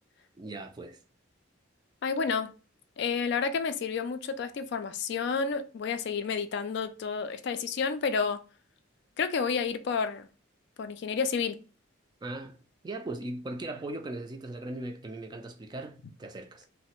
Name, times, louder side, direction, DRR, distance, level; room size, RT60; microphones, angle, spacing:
voice 1, 0.4-1.0 12.2-16.7, right 2 dB, 20° right, 0.3 m, -39 dB
voice 2, 2.0-2.5 3.0-8.4 9.2-10.3 10.8-11.6, left 5 dB, 60° left, 0.3 m, -30 dB
3.1 x 2.0 x 2.9 m
head